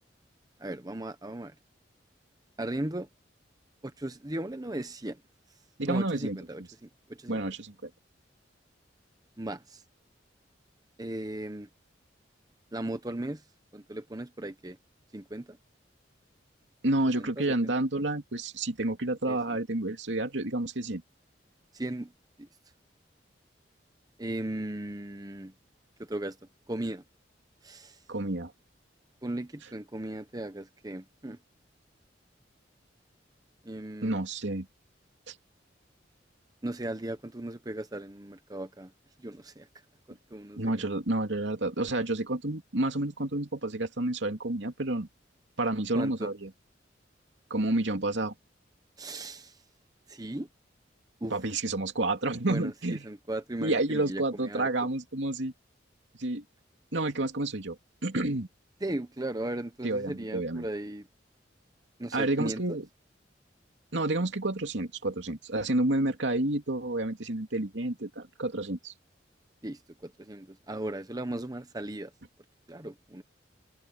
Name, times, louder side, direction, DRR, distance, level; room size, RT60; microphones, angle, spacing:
voice 1, 0.6-1.5 2.6-3.1 3.8-5.2 5.9-6.9 7.2-7.4 9.4-9.8 11.0-11.7 12.7-13.4 13.7-14.8 15.1-15.6 17.2-17.7 19.3-19.4 21.7-22.1 22.4-22.5 24.2-25.5 26.0-26.4 26.7-27.0 27.6-28.0 29.2-31.4 33.6-34.2 36.6-38.9 39.2-39.7 40.3-40.7 45.9-46.3 49.0-49.6 50.1-50.5 51.2-51.3 52.5-54.7 58.8-61.1 62.0-62.8 69.6-72.1 72.7-73.2, right 1 dB, 20° right, 1.0 m, -37 dB
voice 2, 5.8-6.4 7.3-7.9 16.8-21.0 28.1-28.5 34.0-34.7 35.3-35.4 40.6-45.1 45.6-46.5 47.5-48.3 51.3-53.0 53.6-55.5 56.2-56.4 56.9-57.8 58.0-58.5 59.8-60.7 62.1-62.9 63.9-68.9, right 2 dB, 80° right, 2.6 m, -30 dB
head